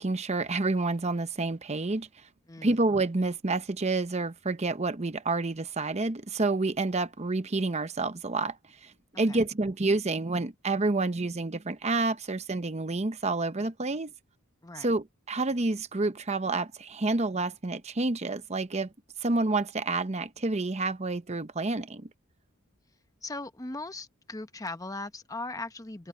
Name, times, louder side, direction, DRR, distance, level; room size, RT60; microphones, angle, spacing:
voice 1, 0.0-2.1 2.6-8.6 8.8-14.1 14.8-18.9 19.2-22.1, right 3 dB, 30° right, 0.8 m, -29 dB
voice 2, 2.5-2.8 9.3-9.4 14.6-14.9 23.2-26.1, left 2 dB, 15° left, 0.9 m, -38 dB
open air
head